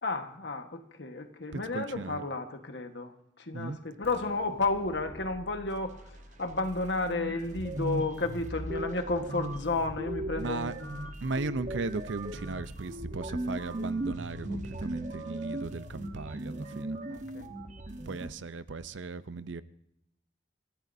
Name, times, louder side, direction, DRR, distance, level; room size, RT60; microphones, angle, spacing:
voice 1, 0.0-11.0 17.1-17.5, left 3 dB, 65° left, 1.5 m, -32 dB
voice 2, 1.5-2.2 3.5-3.8 10.4-10.7 11.2-17.0 18.1-19.6, right 3 dB, 85° right, 0.7 m, -37 dB
sound 1, 4.0-15.5, equal, 30° left, 1.4 m, -49 dB
sound 2, 6.7-6.8 7.0-18.3, right 1 dB, 40° right, 1.2 m, -37 dB
27.5 x 15.0 x 2.7 m
head